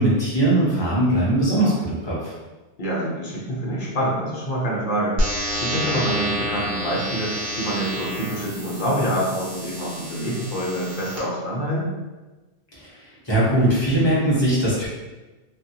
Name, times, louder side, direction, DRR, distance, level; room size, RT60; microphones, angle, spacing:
voice 1, 0.0-2.3 12.8-14.9, right 1 dB, 25° left, -8 dB, 0.9 m, -20 dB
voice 2, 2.8-5.2 5.6-11.9, equal, 50° left, -4 dB, 0.9 m, -26 dB
sound 1, 5.2-11.2, equal, 60° right, 1.1 m, -29 dB
2.6 x 2.4 x 2.7 m, 1.2 s
omnidirectional pair, 1.2 m